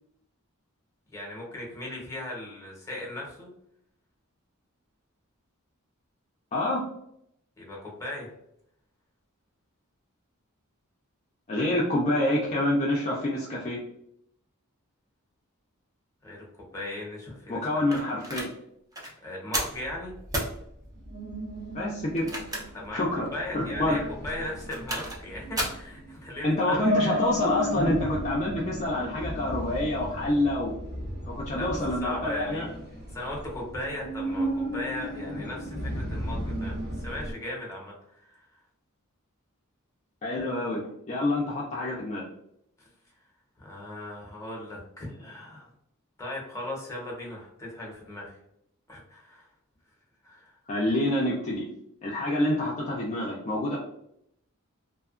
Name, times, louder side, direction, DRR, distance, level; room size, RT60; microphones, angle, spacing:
voice 1, 1.1-3.5 7.6-8.3 16.2-16.4 16.7-17.6 19.2-20.1 22.7-23.0 23.3-26.9 31.5-32.6 33.1-38.5 42.8-42.9 43.6-45.7 46.2-48.4 48.9-49.5 50.2-50.5, left 1 dB, 15° left, -2 dB, 0.8 m, -37 dB
voice 2, 6.5-6.8 11.5-13.8 17.5-18.5 21.7-22.3 22.9-23.3 23.5-24.1 26.4-30.7 31.2-32.7 40.2-42.2 50.7-51.7 52.0-53.8, left 1 dB, 35° left, -4 dB, 0.4 m, -27 dB
sound 1, 17.9-18.5 18.9-19.1 19.5-19.8 20.3-20.5 22.1-22.9 23.3-23.4 24.5-25.2 25.6-25.8, right 1 dB, 15° right, 0.5 m, -32 dB
sound 2, 19.8-37.3, equal, 50° right, 0.9 m, -35 dB
2.7 x 2.3 x 2.4 m, 0.75 s
head